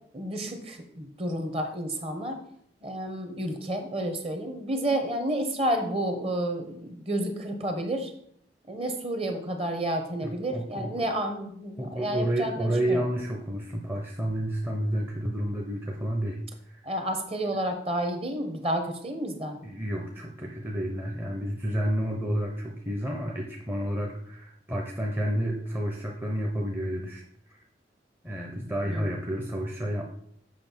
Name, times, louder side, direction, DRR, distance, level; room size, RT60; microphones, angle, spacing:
voice 1, 0.1-2.4 2.8-8.1 8.7-13.0 16.8-19.6 28.8-29.2, right 1 dB, 30° right, 6 dB, 1.0 m, -30 dB
voice 2, 10.2-10.9 11.8-16.4 19.6-27.2 28.2-30.0, equal, 10° right, 0 dB, 0.7 m, -30 dB
7.6 x 5.5 x 4.5 m, 0.68 s
head